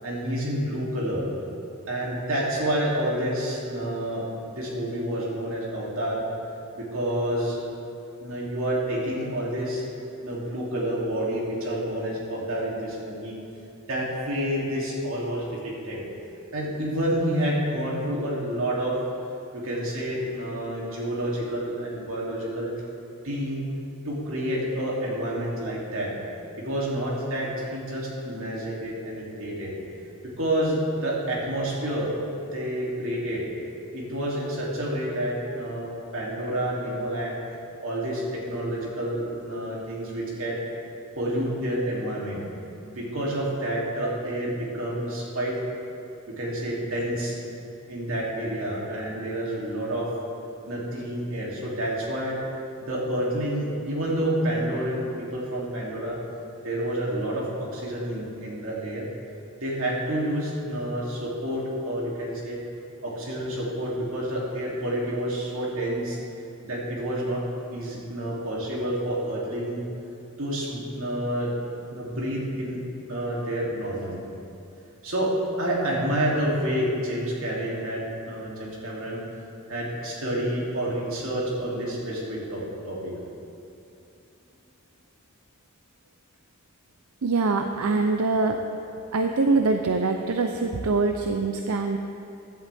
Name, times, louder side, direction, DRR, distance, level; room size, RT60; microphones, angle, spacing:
voice 1, 0.0-1.2 1.9-4.2 4.5-6.2 6.7-7.6 8.2-9.8 10.2-13.4 13.9-16.0 16.5-19.0 19.5-22.7 23.2-23.6 24.0-26.1 26.6-29.7 30.4-32.1 32.5-33.4 33.9-37.4 37.8-40.6 41.2-42.4 42.8-45.5 46.3-47.4 47.9-50.1 50.7-52.4 52.8-56.2 56.6-59.0 59.6-62.6 63.0-66.2 66.6-67.4 67.7-69.8 70.4-71.5 71.9-72.8 73.1-74.2 75.0-75.3 75.6-79.2 79.7-83.1, right 1 dB, 65° right, -4 dB, 2.9 m, -29 dB
voice 2, 87.2-88.6 89.1-92.0, right 3 dB, 85° right, 5 dB, 0.6 m, -24 dB
16.0 x 11.0 x 3.5 m, 2.7 s
head